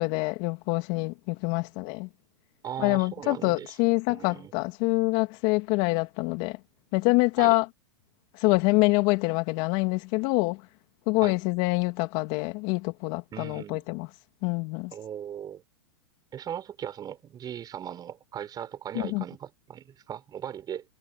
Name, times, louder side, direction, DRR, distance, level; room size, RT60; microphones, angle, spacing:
voice 1, 0.0-2.1 2.8-6.6 6.9-7.7 8.4-10.6 11.1-14.1 14.4-14.9 18.9-19.2, left 25 dB, 50° left, 2.7 m, -25 dB
voice 2, 2.6-3.7 4.1-4.5 7.4-7.6 11.2-11.4 13.3-13.8 14.9-15.6 16.3-20.8, right 9 dB, 25° right, 5.5 m, -38 dB
hypercardioid pair, 130°, 15 cm